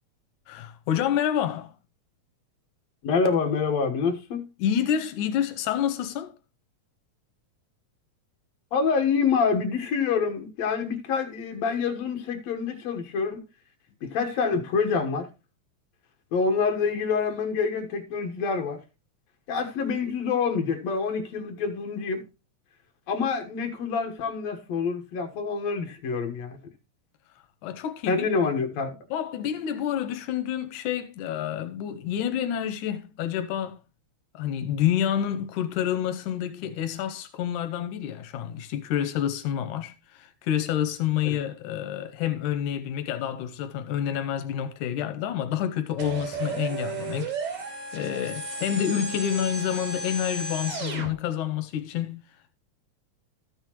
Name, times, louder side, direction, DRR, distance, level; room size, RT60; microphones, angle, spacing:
voice 1, 0.5-1.7 4.6-6.3 27.6-28.3 29.1-33.8 34.3-52.2, left 10 dB, 90° left, 2.3 m, -28 dB
voice 2, 3.0-4.5 8.7-13.4 14.0-15.3 16.3-18.8 19.5-22.2 23.1-26.6 28.1-29.0 41.2-41.4, left 5 dB, 65° left, 2.5 m, -26 dB
sound 1, 46.0-51.1, right 3 dB, 75° right, 4.7 m, -33 dB
13.0 x 8.0 x 3.0 m
omnidirectional pair, 3.4 m